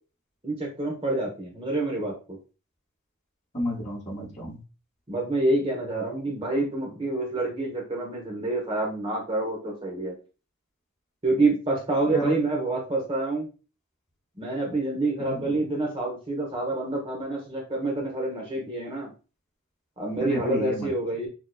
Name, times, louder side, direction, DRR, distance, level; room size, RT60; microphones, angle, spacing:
voice 1, 0.4-2.4 5.1-10.2 11.2-13.5 14.4-19.1 20.0-21.3, right 2 dB, 25° right, 0 dB, 0.9 m, -27 dB
voice 2, 3.5-4.6 12.1-12.3 15.2-15.4 20.2-20.9, right 1 dB, 35° left, -5 dB, 2.4 m, -31 dB
6.4 x 2.9 x 2.2 m, 0.34 s
head